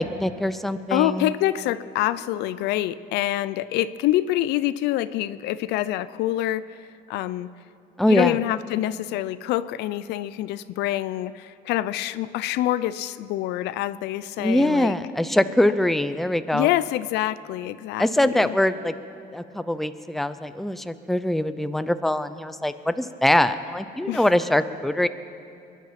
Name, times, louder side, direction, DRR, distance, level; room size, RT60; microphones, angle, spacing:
voice 1, 0.0-1.3 8.0-8.4 14.4-16.7 18.0-18.9 19.3-25.1, left 1 dB, ahead, 11 dB, 0.5 m, -23 dB
voice 2, 0.9-6.8 7.1-7.5 8.1-15.0 16.5-18.5 24.1-24.3, left 14 dB, 85° left, 16 dB, 0.5 m, -26 dB
22.0 x 10.5 x 5.9 m, 2.6 s
cardioid pair, 110°, 17 cm